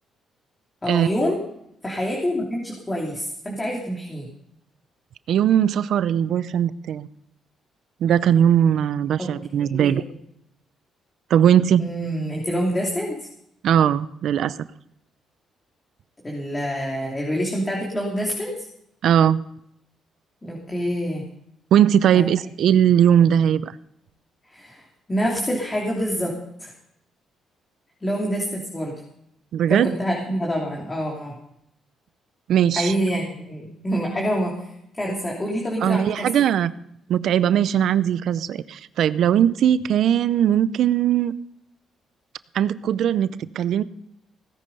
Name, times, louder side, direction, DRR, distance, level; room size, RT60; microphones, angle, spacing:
voice 1, 0.8-1.4 1.8-4.3 9.2-9.3 9.7-10.0 11.8-13.2 16.2-18.6 20.4-21.2 22.1-22.2 24.5-24.8 25.1-26.7 28.0-28.9 29.7-31.3 32.7-34.7 35.0-36.4, equal, 20° left, -2 dB, 3.1 m, -26 dB
voice 2, 5.3-7.1 8.0-10.0 11.3-11.9 13.6-14.7 19.0-19.4 21.7-23.7 29.5-29.9 32.5-32.9 35.8-36.7 37.1-41.3 42.5-43.8, right 9 dB, 70° right, 16 dB, 0.6 m, -19 dB
17.0 x 10.0 x 5.4 m, 0.76 s
cardioid pair, 90°, 0 cm